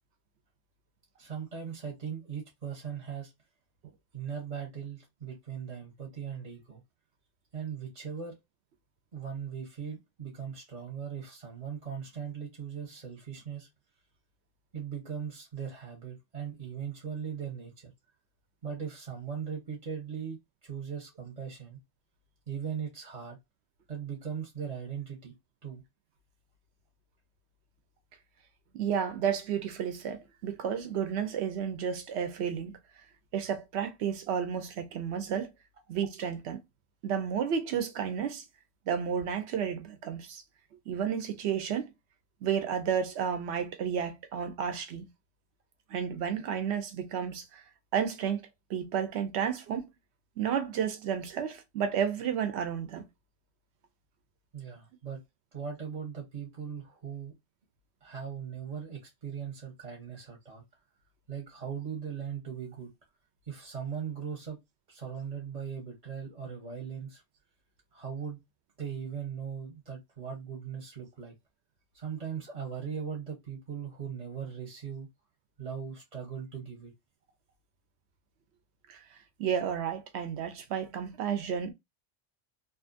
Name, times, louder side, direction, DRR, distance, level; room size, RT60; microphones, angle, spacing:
voice 1, 1.2-3.3 4.1-6.8 7.5-8.3 9.1-13.7 14.7-17.9 18.6-21.8 22.5-23.4 23.9-25.3 25.6-25.8 54.5-55.2 55.5-57.3 58.0-60.6 61.3-62.9 63.5-64.6 64.9-67.2 67.9-68.4 68.8-71.3 71.9-75.1 75.6-76.9, right 7 dB, 35° right, 0.8 m, -39 dB
voice 2, 28.7-32.8 33.3-35.5 35.9-36.6 37.0-38.4 38.9-40.4 40.9-41.9 42.4-45.1 45.9-47.6 47.9-48.4 48.7-49.9 50.4-53.1 78.9-79.0 79.4-81.7, right 8 dB, 70° right, 0.8 m, -32 dB
2.6 x 2.5 x 2.5 m
omnidirectional pair, 1.2 m